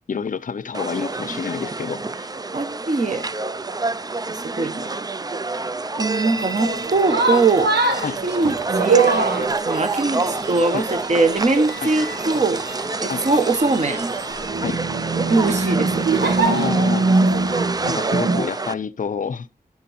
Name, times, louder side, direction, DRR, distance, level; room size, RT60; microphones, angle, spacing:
voice 1, 0.1-2.3 8.0-8.2 10.7-10.8 11.8-11.9 13.1-13.3 14.6-14.8 16.5-17.1 17.9-19.5, left 6 dB, 55° left, 0.5 m, -28 dB
sound 1, 0.7-18.7, right 3 dB, 25° right, 0.4 m, -28 dB
voice 2, 2.5-3.3 4.3-4.9 6.0-7.7 8.2-9.2 9.6-12.6 13.0-14.1 15.3-16.1 17.8-18.0, right 3 dB, 45° right, 1.1 m, -21 dB
sound 2, 6.4-18.4, right 3 dB, 85° right, 1.2 m, -23 dB
11.0 x 4.7 x 4.2 m
wide cardioid pair, 80°, 16 cm